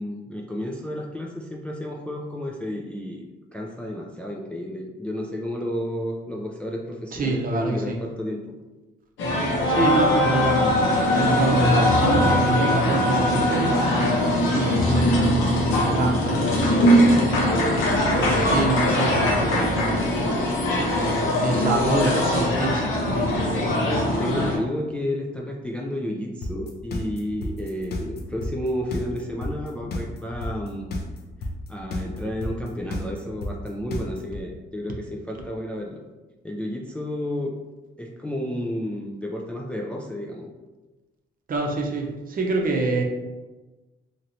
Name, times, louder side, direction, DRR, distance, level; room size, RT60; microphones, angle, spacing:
voice 1, 0.0-3.3 3.5-8.5 18.5-18.7 21.5-22.1 24.2-30.9 31.7-36.0 36.4-37.5 38.0-40.5, left 1 dB, 5° left, -1 dB, 0.3 m, -31 dB
voice 2, 7.1-8.0 9.7-13.7 14.5-15.4 15.7-16.8 18.2-20.3 21.4-23.3 41.5-43.0, right 2 dB, 45° right, 0 dB, 0.7 m, -26 dB
sound 1, 9.2-24.6, left 1 dB, 90° left, 0.8 m, -21 dB
sound 2, 26.4-34.4, left 1 dB, 55° left, 0.6 m, -30 dB
3.0 x 2.9 x 2.6 m, 1.2 s
cardioid pair, 90°, 20 cm